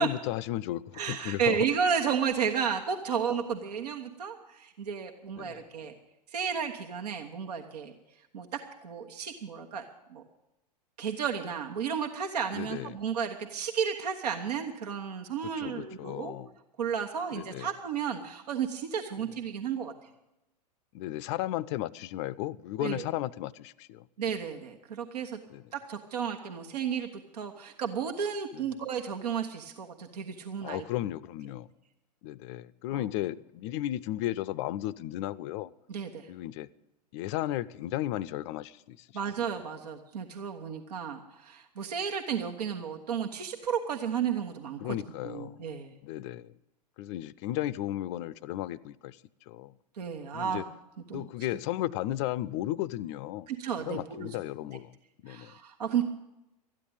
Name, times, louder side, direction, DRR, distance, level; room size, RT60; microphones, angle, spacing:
voice 1, 0.0-1.6 5.4-5.7 12.5-13.0 15.6-16.5 17.3-17.7 19.2-19.3 20.9-24.1 25.5-25.6 28.5-28.6 30.6-31.7 32.2-35.7 36.3-36.7 37.1-39.1 44.8-45.6 46.0-46.5 47.0-49.2 49.5-49.8 50.3-50.6 51.1-53.5 53.9-54.9 55.2-55.5, left 14 dB, 45° left, 0.5 m, -34 dB
voice 2, 0.9-5.9 6.3-7.9 8.3-9.8 10.1-10.2 11.0-16.4 16.8-19.9 22.8-23.0 24.2-25.4 25.7-30.8 32.9-33.1 35.9-36.3 39.1-45.0 45.2-45.9 49.9-50.6 51.1-51.3 53.5-54.3 55.3-56.0, right 7 dB, 70° right, 1.3 m, -33 dB
13.5 x 9.8 x 8.7 m
figure-of-eight pair, 100°, 21 cm